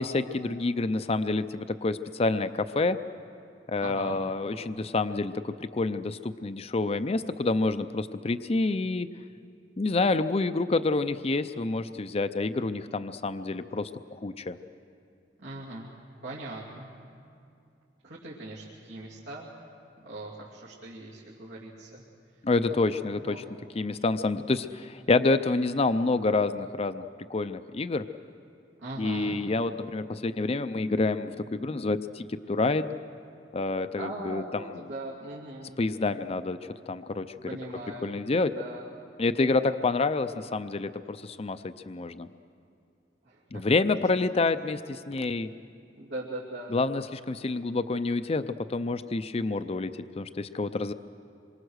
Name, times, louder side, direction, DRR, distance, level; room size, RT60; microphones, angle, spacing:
voice 1, 0.0-3.0 3.7-9.1 9.8-14.6 22.4-23.4 23.7-28.0 29.0-32.9 33.5-34.4 35.8-37.3 38.0-38.5 39.2-42.3 43.5-45.5 46.7-50.9, left 3 dB, 35° left, 11 dB, 0.5 m, -28 dB
voice 2, 3.8-4.2 15.4-15.9 16.2-16.9 18.0-19.5 20.0-22.0 22.6-23.5 28.8-29.4 34.0-35.8 37.4-38.2 38.5-38.8 43.2-43.6 46.0-46.8, right 2 dB, 90° right, -8 dB, 2.8 m, -40 dB
27.0 x 23.5 x 6.4 m, 2.5 s
head